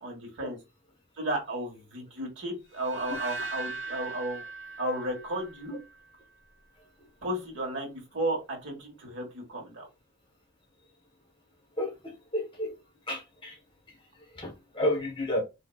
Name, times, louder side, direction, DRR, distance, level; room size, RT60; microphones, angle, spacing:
voice 1, 0.0-0.6 1.2-4.4 4.8-5.8 7.2-9.9, right 1 dB, 70° right, 1 dB, 1.3 m, -33 dB
sound 1, 2.7-5.9, right 3 dB, 90° right, 1.4 m, -39 dB
voice 2, 11.8-12.7 13.1-13.6 13.9-14.0 14.3-15.4, left 1 dB, 25° left, 2 dB, 1.0 m, -32 dB
4.1 x 2.7 x 2.3 m, 0.26 s
head